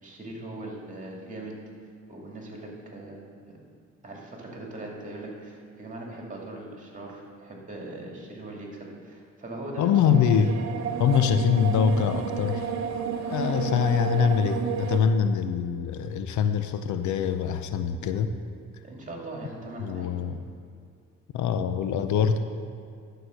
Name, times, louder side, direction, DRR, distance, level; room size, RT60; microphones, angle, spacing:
voice 1, 0.0-1.5 2.1-3.2 4.0-10.0 18.8-20.1, right 2 dB, 25° right, -1 dB, 2.2 m, -40 dB
voice 2, 9.8-10.6 11.0-12.6 13.3-18.3 19.8-20.4 21.3-22.4, left 7 dB, 75° left, 10 dB, 0.6 m, -24 dB
sound 1, 9.8-15.0, right 7 dB, 60° right, 0.8 m, -31 dB
11.5 x 4.9 x 6.2 m, 2.3 s
cardioid pair, 90°, 30 cm